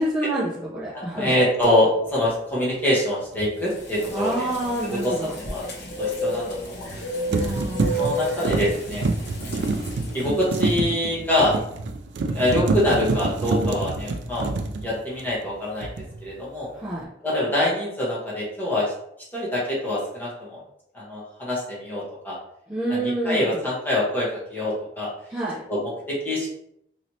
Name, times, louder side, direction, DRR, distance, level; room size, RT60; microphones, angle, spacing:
voice 1, 0.0-1.3 4.1-5.3 7.3-8.1 16.7-17.1 22.7-23.7 25.3-25.6, right 1 dB, 10° right, -9 dB, 0.6 m, -28 dB
voice 2, 0.9-4.5 4.8-5.7 6.0-6.9 8.0-9.0 9.4-9.7 10.1-11.5 12.3-14.5 14.8-15.9 16.2-16.7 17.2-18.9 19.3-20.6 20.9-22.4 22.9-25.1 25.7-26.5, left 1 dB, 10° left, -7 dB, 1.1 m, -25 dB
sound 1, 3.3-3.5 6.6-7.0 7.3-15.5 15.8-16.3, right 3 dB, 90° right, 0.4 m, -27 dB
sound 2, 3.7-10.3, equal, 65° left, 0.9 m, -32 dB
3.1 x 3.0 x 2.8 m, 0.74 s
head